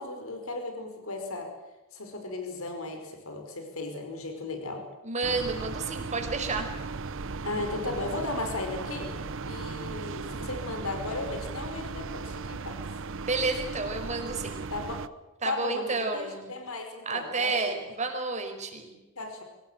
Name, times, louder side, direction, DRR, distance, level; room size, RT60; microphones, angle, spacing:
voice 1, 0.0-1.5 1.9-4.8 7.4-9.1 9.4-12.8 14.7-15.0 15.4-17.8 19.1-19.4, left 2 dB, 75° left, 5 dB, 5.1 m, -35 dB
voice 2, 5.0-6.7 13.2-14.6 15.4-16.5 17.0-18.9, right 3 dB, 35° right, 4 dB, 5.2 m, -31 dB
sound 1, 5.2-15.1, right 4 dB, 65° right, 0.9 m, -37 dB
24.5 x 18.5 x 8.9 m, 1.1 s
head